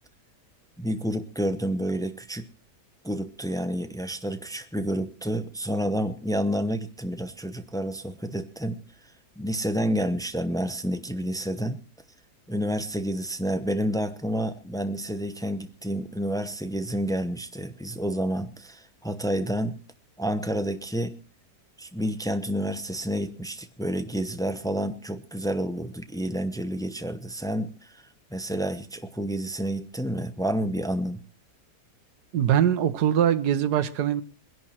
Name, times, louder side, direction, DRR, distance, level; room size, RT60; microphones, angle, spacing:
voice 1, 0.8-2.5 3.0-8.8 9.4-11.8 12.5-19.7 20.2-21.2 21.8-27.7 28.3-31.2, equal, 5° left, 9 dB, 0.4 m, -29 dB
voice 2, 32.3-34.2, right 10 dB, 65° right, 10 dB, 1.6 m, -22 dB
21.0 x 11.0 x 4.3 m, 0.33 s
omnidirectional pair, 1.9 m